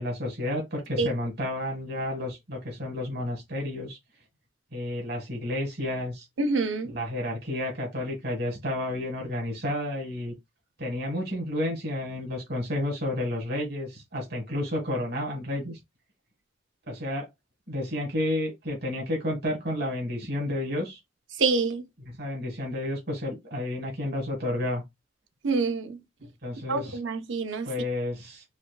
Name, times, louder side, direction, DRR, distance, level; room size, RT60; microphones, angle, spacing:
voice 1, 0.0-4.0 4.7-6.3 6.8-10.3 10.8-15.8 16.9-17.3 17.7-21.0 22.2-24.8 26.4-27.0 27.6-28.4, left 1 dB, 55° right, 1.4 m, -31 dB
voice 2, 6.4-6.9 21.4-21.8 25.4-26.0 26.7-27.7, right 3 dB, 75° right, 0.6 m, -26 dB
4.2 x 2.5 x 2.2 m
head